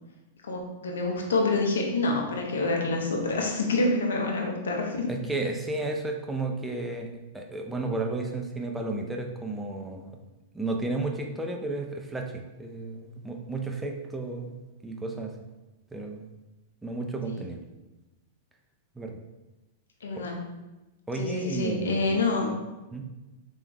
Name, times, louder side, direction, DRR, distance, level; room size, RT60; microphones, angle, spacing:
voice 1, 0.4-5.4 17.3-17.4 20.0-20.4 21.1-22.5, left 2 dB, 80° left, 0 dB, 0.7 m, -27 dB
voice 2, 5.1-10.2 10.5-15.3 15.9-16.3 16.8-17.6 19.0-19.2 20.1-20.3 21.1-22.2 22.9-23.0, right 2 dB, 10° right, 2 dB, 0.5 m, -33 dB
3.5 x 3.3 x 3.0 m, 1.1 s
hypercardioid pair, 115°, 0 cm